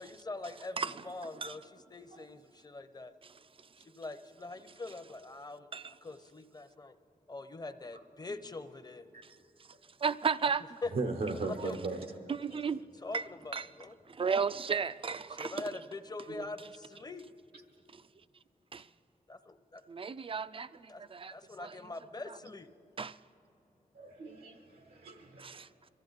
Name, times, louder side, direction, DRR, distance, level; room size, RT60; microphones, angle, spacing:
voice 1, 0.0-1.6 1.9-3.1 3.8-7.0 7.3-9.0 10.8-10.9 11.4-11.8 13.0-14.0 15.3-17.2 19.3-19.8 20.9-21.0 21.3-22.7, left 3 dB, 25° left, 0.7 m, -43 dB
voice 2, 10.0-10.6 12.3-12.8 13.1-13.2 13.5-13.7 14.1-15.6 17.9-18.0 18.7-18.9 19.9-21.3 21.6-21.8 23.0-23.2 25.4-25.7, right 5 dB, 35° right, 0.4 m, -34 dB
voice 3, 10.9-12.0 16.3-16.4 23.9-25.7, right 3 dB, 85° right, 0.9 m, -38 dB
22.5 x 14.0 x 4.0 m
wide cardioid pair, 75°, 15 cm